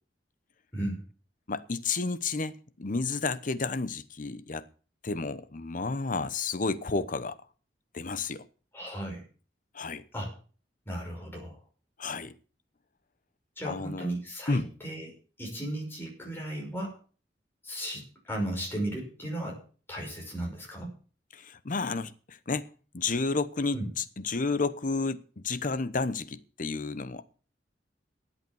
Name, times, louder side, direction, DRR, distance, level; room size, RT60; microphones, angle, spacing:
voice 1, 1.5-4.6 5.0-7.4 7.9-8.5 9.7-10.0 12.0-12.3 13.6-14.1 14.5-14.7 21.3-22.7 22.9-27.2, left 4 dB, 50° left, 0.9 m, -31 dB
voice 2, 8.7-9.2 10.1-10.3 10.9-11.6 13.6-17.0 17.6-19.6 19.9-20.9 23.7-23.9, right 1 dB, 15° left, 5.5 m, -35 dB
12.5 x 8.3 x 7.0 m
head